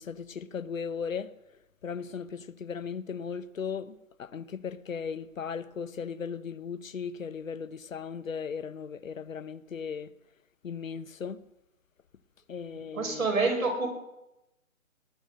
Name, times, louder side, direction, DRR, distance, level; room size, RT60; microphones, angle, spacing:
voice 1, 0.0-1.3 1.8-10.1 10.6-11.4 12.5-13.5, left 6 dB, 75° left, 0.8 m, -37 dB
voice 2, 12.9-13.9, right 3 dB, 80° right, 5.2 m, -27 dB
19.0 x 8.2 x 6.4 m
hypercardioid pair, 180°, 41 cm